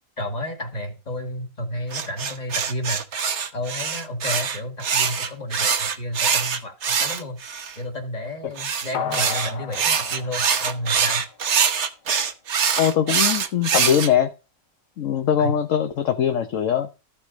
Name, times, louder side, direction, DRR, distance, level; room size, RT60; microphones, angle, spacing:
voice 1, 0.2-3.0 3.5-11.3 15.4-15.5, left 1 dB, 25° left, 4 dB, 2.1 m, -31 dB
sound 1, 1.9-7.7 8.6-14.1, right 6 dB, 50° right, 1.1 m, -23 dB
sound 2, 8.9-11.5 11.9-12.0, left 6 dB, 70° left, 1.6 m, -34 dB
voice 2, 12.8-14.3 15.0-16.9, left 9 dB, 55° left, 7 dB, 1.1 m, -21 dB
13.5 x 5.9 x 5.2 m, 0.31 s
omnidirectional pair, 1.8 m